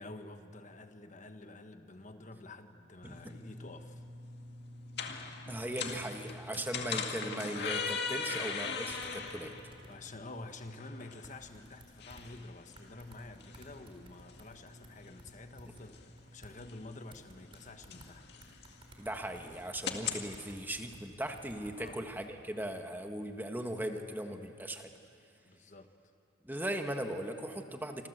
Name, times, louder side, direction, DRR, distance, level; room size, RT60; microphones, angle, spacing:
voice 1, 0.0-4.0 8.1-8.4 9.9-18.4 21.7-22.0 25.4-25.9, left 2 dB, 40° left, 7 dB, 1.2 m, -49 dB
sound 1, 3.0-20.3, left 5 dB, 60° left, 2.1 m, -42 dB
voice 2, 3.0-3.3 5.5-9.5 19.0-24.9 26.4-28.1, right 1 dB, 10° right, 5 dB, 1.5 m, -38 dB
sound 2, 8.9-9.9 10.6-10.7 11.2-12.4 12.8-16.5 17.1-18.1 18.4-22.3, right 1 dB, 30° right, 4.4 m, -56 dB
27.5 x 26.5 x 8.1 m, 2.4 s
head